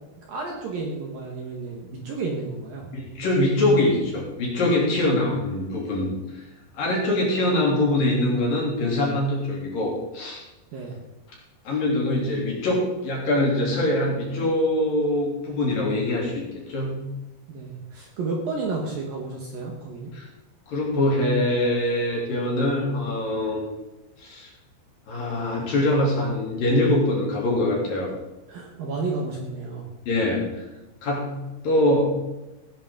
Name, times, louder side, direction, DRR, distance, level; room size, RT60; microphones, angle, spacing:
voice 1, 0.3-2.9 10.7-11.0 17.5-20.1 28.5-29.9, right 3 dB, 60° right, -1 dB, 2.7 m, -31 dB
voice 2, 2.9-6.4 6.7-10.4 11.6-16.4 16.7-17.0 20.1-20.3 20.7-23.7 24.2-24.5 25.1-28.1 30.1-30.4 31.0-31.4 31.6-32.1, left 1 dB, 50° left, -3 dB, 4.3 m, -23 dB
18.0 x 10.0 x 3.8 m, 1.0 s
omnidirectional pair, 5.5 m